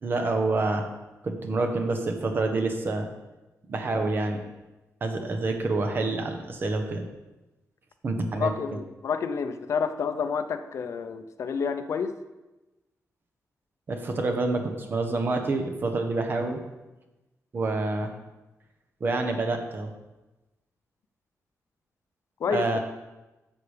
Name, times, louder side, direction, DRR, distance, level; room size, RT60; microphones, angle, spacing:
voice 1, 0.0-0.9 1.2-3.1 3.7-4.4 5.0-7.0 8.0-8.5 13.9-16.6 17.5-18.1 19.0-19.9 22.5-22.8, right 3 dB, 40° right, 5 dB, 1.2 m, -27 dB
voice 2, 8.4-12.1 22.4-22.8, left 6 dB, 60° left, 9 dB, 0.7 m, -29 dB
11.5 x 6.9 x 5.1 m, 1.0 s
wide cardioid pair, 175°, 6 cm